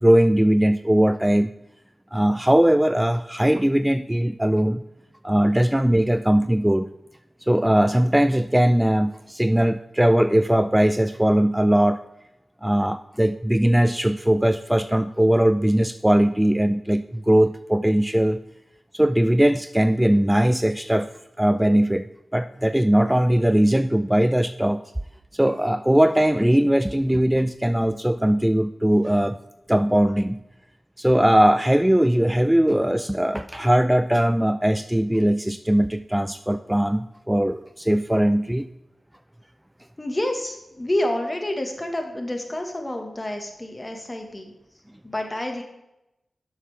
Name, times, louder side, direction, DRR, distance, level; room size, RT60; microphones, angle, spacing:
voice 1, 0.0-1.5 2.1-4.8 5.2-6.9 7.4-12.0 12.6-18.4 18.9-21.1 21.4-22.0 22.3-24.8 25.3-29.4 29.7-30.4 31.0-38.7, right 1 dB, 10° right, 11 dB, 0.4 m, -20 dB
voice 2, 40.0-44.5 45.0-45.6, left 1 dB, 30° left, 4 dB, 1.9 m, -28 dB
11.0 x 7.2 x 3.6 m, 0.91 s
cardioid pair, 45°, 0 cm